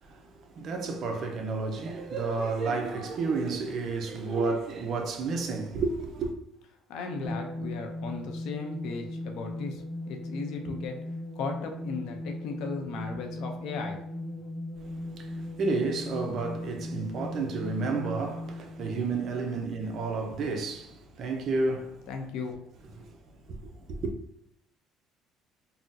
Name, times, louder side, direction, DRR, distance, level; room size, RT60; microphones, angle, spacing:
voice 1, 0.0-6.3 14.8-22.1 23.1-23.2 23.5-24.1, right 3 dB, 50° right, 0.5 m, -31 dB
voice 2, 6.9-11.0 11.4-14.0 22.1-22.6 22.9-23.0, left 4 dB, 75° left, 0.6 m, -36 dB
sound 1, 7.2-20.1, left 1 dB, 20° right, 1.0 m, -38 dB
3.6 x 2.0 x 2.7 m
cardioid pair, 120°, 0 cm